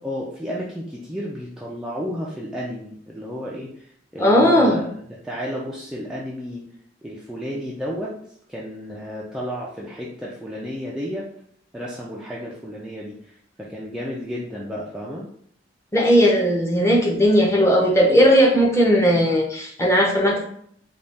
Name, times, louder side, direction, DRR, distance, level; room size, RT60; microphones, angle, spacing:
voice 1, 0.0-4.9 5.2-6.7 7.0-8.1 8.5-11.3 11.7-15.3, equal, 5° right, -5 dB, 0.5 m, -32 dB
voice 2, 4.2-4.8 15.9-20.5, equal, 15° left, -2 dB, 0.8 m, -17 dB
4.0 x 2.4 x 3.4 m, 0.64 s
head